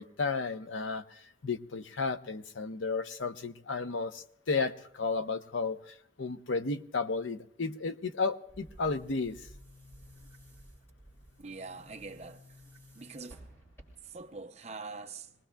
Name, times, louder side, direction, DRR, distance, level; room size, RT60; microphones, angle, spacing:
voice 1, 0.0-9.4, left 4 dB, 90° left, 0.8 m, -33 dB
Boom, 8.5-14.3, equal, 15° left, 2.5 m, -54 dB
voice 2, 11.4-12.6 12.9-13.6 14.0-15.3, right 4 dB, 35° right, 0.7 m, -44 dB
25.0 x 19.0 x 2.3 m
head